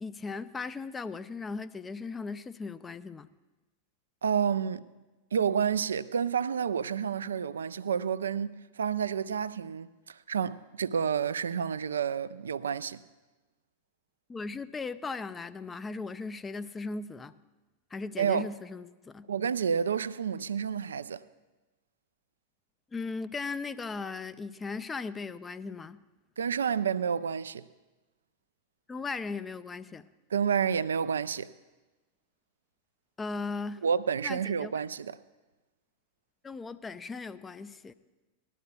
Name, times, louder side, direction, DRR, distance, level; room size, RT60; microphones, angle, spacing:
voice 1, 0.0-3.3 14.3-17.4 17.9-19.3 22.9-26.0 28.9-30.1 33.2-33.8 34.2-34.7 36.4-37.9, left 4 dB, 15° left, 0.5 m, -37 dB
voice 2, 4.2-4.8 5.3-13.0 18.2-18.5 19.3-21.2 26.4-27.7 30.3-31.5 33.8-35.2, right 7 dB, 70° right, 0.4 m, -29 dB
19.5 x 12.0 x 2.4 m
figure-of-eight pair, 90°, 0 cm